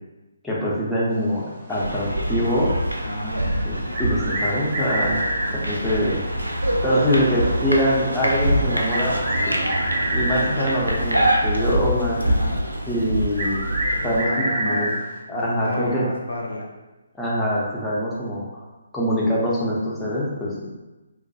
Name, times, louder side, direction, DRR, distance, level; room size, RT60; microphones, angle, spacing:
voice 1, 0.4-2.7 3.6-5.2 5.6-6.2 6.8-9.2 9.5-9.6 10.1-12.2 12.9-13.6 14.0-14.9 15.3-16.0 17.2-18.6 18.9-20.7, equal, 5° left, -8 dB, 0.5 m, -24 dB
sound 1, 1.7-14.2, right 1 dB, 85° right, 0.3 m, -25 dB
voice 2, 3.0-3.4 12.2-12.6 14.0-14.9 15.3-16.7, left 1 dB, 70° left, -1 dB, 0.4 m, -30 dB
sound 2, 3.9-5.5 7.3-7.4 8.9-10.8 13.3-15.0, right 1 dB, 40° right, 0.6 m, -26 dB
2.2 x 2.2 x 2.6 m, 1.1 s
figure-of-eight pair, 140°, 0 cm